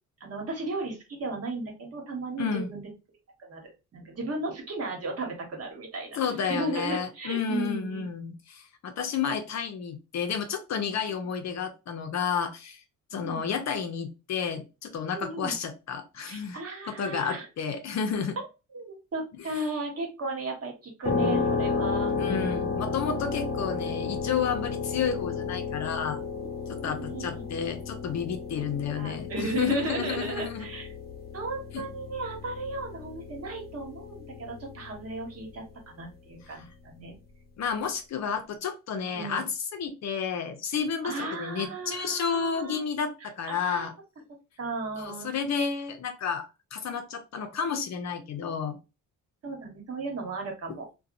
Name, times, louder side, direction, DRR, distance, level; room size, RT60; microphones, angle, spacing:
voice 1, 0.2-2.8 3.4-3.6 3.9-6.2 6.5-8.0 13.2-13.4 15.1-15.5 16.3-17.5 18.7-22.1 26.4-27.4 29.0-30.9 31.3-37.1 39.1-39.5 41.0-42.8 43.5-43.9 44.6-45.3 49.4-50.8, right 2 dB, 45° right, 2 dB, 1.2 m, -35 dB
voice 2, 2.4-2.7 6.2-12.8 13.1-16.6 16.9-18.4 22.2-26.2 26.7-30.7 31.7-31.8 36.5-36.7 37.6-43.9 45.0-48.8, left 6 dB, 55° left, 7 dB, 0.6 m, -31 dB
sound 1, 21.0-35.7, left 4 dB, 30° left, 0.8 m, -33 dB
2.7 x 2.2 x 2.5 m, 0.28 s
cardioid pair, 100°, 33 cm